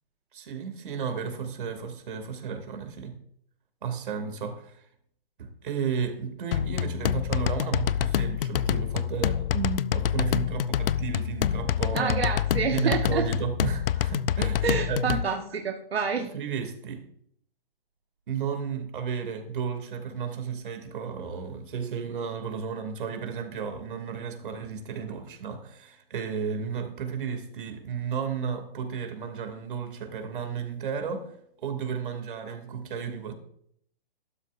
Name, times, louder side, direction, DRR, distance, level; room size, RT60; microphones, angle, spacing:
voice 1, 0.3-3.1 3.8-4.8 5.4-12.2 12.7-15.2 16.2-17.0 18.3-31.3 31.6-33.3, right 6 dB, 60° right, 5 dB, 2.6 m, -33 dB
sound 1, 6.5-15.2, left 10 dB, 70° left, 0.5 m, -27 dB
voice 2, 11.9-13.3 14.6-16.3, right 6 dB, 85° right, 3 dB, 1.3 m, -28 dB
13.5 x 12.5 x 2.6 m, 0.67 s
hypercardioid pair, 155°, 30 cm